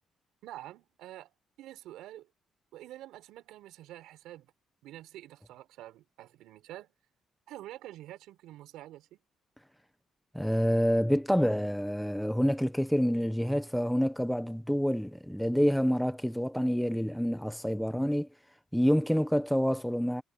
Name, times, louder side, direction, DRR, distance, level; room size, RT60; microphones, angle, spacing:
voice 1, 0.4-2.3 2.7-4.5 4.8-6.9 7.5-9.2, right 14 dB, 85° right, 6.1 m, -47 dB
voice 2, 10.3-18.3 18.7-20.2, equal, ahead, 1.2 m, -27 dB
supercardioid pair, 70°, 0 cm